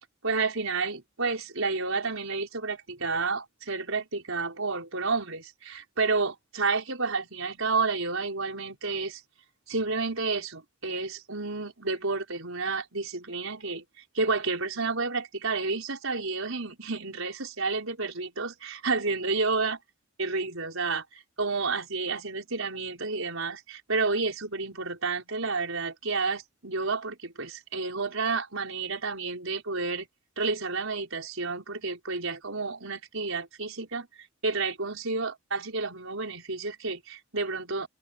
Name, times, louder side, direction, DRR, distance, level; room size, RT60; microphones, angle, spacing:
voice 1, 0.2-9.2 9.7-13.8 14.1-19.8 20.2-30.1 30.4-34.1 34.4-37.9, right 4 dB, 70° right, 4.7 m, -30 dB
open air
head